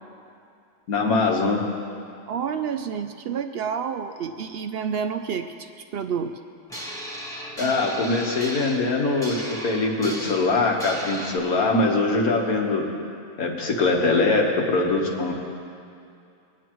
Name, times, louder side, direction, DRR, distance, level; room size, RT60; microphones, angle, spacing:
voice 1, 0.9-1.7 7.6-12.9 13.4-15.3, left 3 dB, 90° left, 0 dB, 1.8 m, -22 dB
voice 2, 2.3-6.3, right 7 dB, 70° right, 8 dB, 0.6 m, -29 dB
sound 1, 6.7-11.4, equal, 5° left, 1.2 m, -36 dB
21.0 x 9.6 x 3.1 m, 2.5 s
omnidirectional pair, 1.5 m